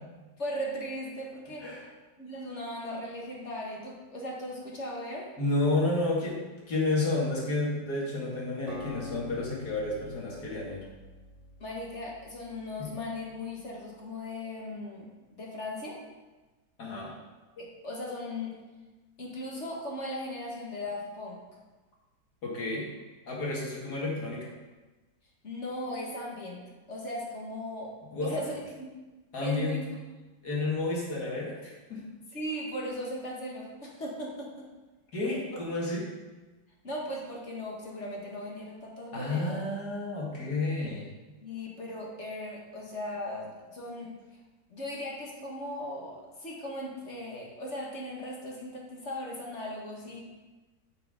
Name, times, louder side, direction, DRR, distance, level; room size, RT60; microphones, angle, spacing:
voice 1, 0.4-1.7 2.2-5.3 11.6-16.0 17.6-18.6 19.2-21.6 25.4-27.9 28.2-28.9 29.4-30.0 32.3-34.6 36.8-39.6 41.4-44.2 44.7-50.2, left 1 dB, 40° left, -2 dB, 1.9 m, -38 dB
voice 2, 5.4-10.8 12.8-12.9 16.8-17.1 22.4-22.9 23.3-24.5 28.1-28.5 29.3-29.8 30.4-32.1 35.1-36.1 39.1-41.1, left 2 dB, 60° left, -4 dB, 2.6 m, -31 dB
Acoustic guitar, 8.7-12.8, left 2 dB, 85° right, 1.9 m, -46 dB
9.3 x 5.8 x 5.1 m, 1.2 s
omnidirectional pair, 1.9 m